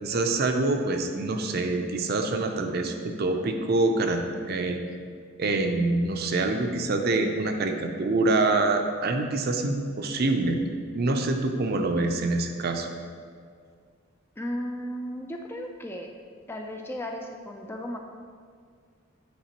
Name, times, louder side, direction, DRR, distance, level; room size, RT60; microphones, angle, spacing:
voice 1, 0.0-4.2 4.5-4.8 5.4-10.7 10.9-12.9, right 2 dB, 50° right, 5 dB, 0.5 m, -25 dB
voice 2, 14.4-16.1 16.5-18.0, equal, 10° left, 2 dB, 0.3 m, -35 dB
8.4 x 5.1 x 2.9 m, 2.1 s
head